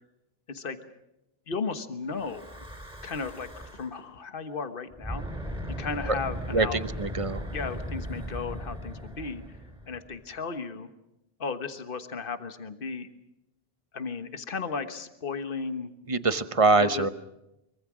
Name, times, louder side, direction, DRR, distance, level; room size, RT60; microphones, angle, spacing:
voice 1, 0.5-0.8 1.5-2.6 3.0-5.3 5.8-6.8 7.5-9.4 9.9-10.9 11.4-13.1 13.9-15.9 16.7-17.1, left 5 dB, 60° left, 9 dB, 1.5 m, -35 dB
Breathing / Wind, 2.1-4.0 4.9-10.3, equal, 5° right, 4.0 m, -38 dB
voice 2, 6.5-7.4 16.1-17.1, right 3 dB, 35° right, 12 dB, 1.0 m, -24 dB
24.5 x 24.0 x 6.2 m, 0.89 s
omnidirectional pair, 1.0 m